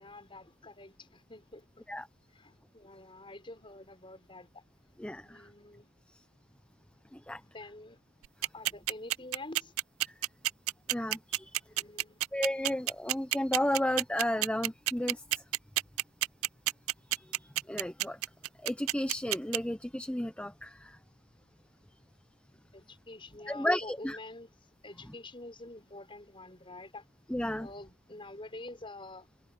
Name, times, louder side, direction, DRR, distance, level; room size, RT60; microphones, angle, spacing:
voice 1, 0.0-1.9 2.3-4.6 5.2-5.9 7.4-8.0 8.5-9.7 11.6-12.2 22.7-24.5 24.8-27.0 27.6-29.3, left 2 dB, 25° left, 5.8 m, -47 dB
voice 2, 5.0-5.5 7.1-7.4 10.9-11.6 12.3-15.4 17.1-18.2 18.6-21.0 23.5-24.2 27.3-27.7, left 1 dB, 5° left, 0.7 m, -33 dB
sound 1, 8.2-19.6, right 17 dB, 85° right, 0.3 m, -29 dB
head